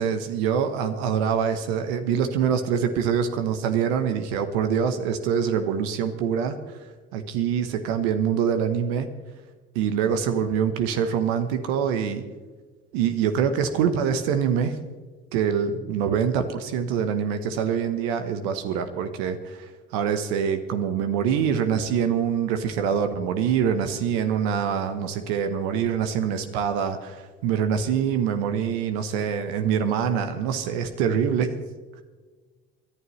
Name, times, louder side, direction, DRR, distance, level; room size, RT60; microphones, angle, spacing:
voice 1, 0.0-9.1 9.7-12.2 12.9-14.8 15.3-31.6, right 7 dB, 75° right, 8 dB, 1.1 m, -25 dB
28.5 x 11.5 x 3.2 m, 1.4 s
hypercardioid pair, 60°, 32 cm